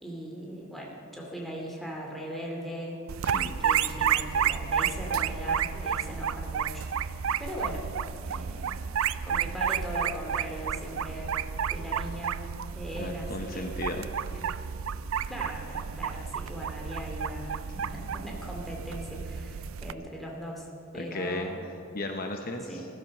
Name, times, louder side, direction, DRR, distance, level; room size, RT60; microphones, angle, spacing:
voice 1, 0.0-3.0 3.3-6.9 7.4-7.8 8.2-8.8 9.2-11.3 11.7-12.4 12.7-13.7 14.3-14.4 15.3-17.6 17.9-20.7 20.9-21.6 22.7-22.8, equal, ahead, -2 dB, 2.4 m, -39 dB
sound 1, 3.1-19.9, right 8 dB, 75° right, 0.4 m, -31 dB
voice 2, 3.2-3.6 13.0-14.1 20.9-21.5 21.9-22.9, left 2 dB, 45° left, 4 dB, 0.8 m, -35 dB
15.0 x 13.0 x 6.5 m, 2.8 s
head